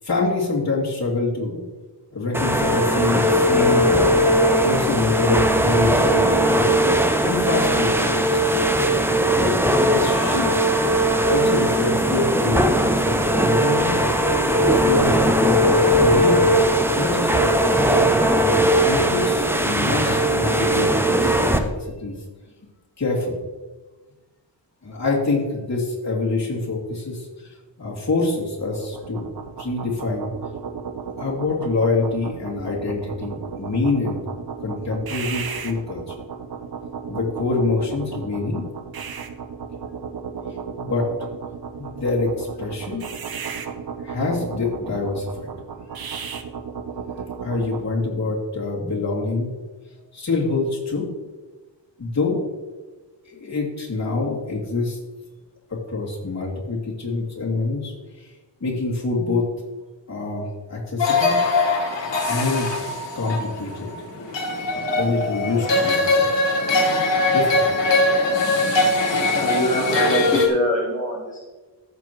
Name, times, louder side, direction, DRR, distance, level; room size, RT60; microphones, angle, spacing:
voice 1, 0.0-1.6 2.1-4.1 4.6-6.7 7.2-8.4 9.4-9.5 9.8-10.6 11.3-14.0 14.8-16.4 16.9-18.1 18.8-21.7 22.0-22.2 23.0-23.3 24.8-27.3 27.8-29.3 29.6-30.3 31.2-34.2 34.6-36.1 37.1-38.6 40.8-41.1 41.8-43.1 44.0-45.5 47.4-49.5 50.1-51.1 52.0-52.4 53.2-55.0 55.7-58.3 58.6-59.5 60.1-61.3 62.2-62.7 63.1-63.9 64.7-66.4 66.9-67.6, left 3 dB, 35° left, -5 dB, 2.8 m, -25 dB
sound 1, 2.3-21.6, right 1 dB, 5° right, 0.6 m, -19 dB
sound 2, 28.6-47.8, right 6 dB, 55° right, 0.8 m, -34 dB
sound 3, 61.0-70.5, left 2 dB, 75° left, 1.7 m, -21 dB
voice 2, 69.3-71.4, equal, 20° left, -3 dB, 1.1 m, -23 dB
14.0 x 7.0 x 3.1 m, 1.3 s
wide cardioid pair, 125°, 44 cm